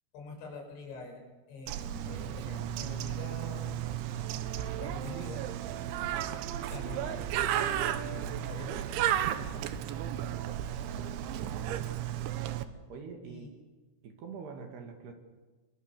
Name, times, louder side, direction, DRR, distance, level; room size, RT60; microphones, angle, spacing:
voice 1, 0.1-3.8 4.8-5.5 6.7-7.3 7.9-8.8 13.3-13.5, left 2 dB, 70° left, 2 dB, 7.1 m, -45 dB
Bird, 1.7-12.7, right 11 dB, 75° right, 3.4 m, -34 dB
voice 2, 9.4-9.8 11.4-11.8 12.9-13.5 14.0-15.1, right 5 dB, 60° right, 5 dB, 4.0 m, -45 dB
27.5 x 24.0 x 6.8 m, 1.3 s
omnidirectional pair, 5.6 m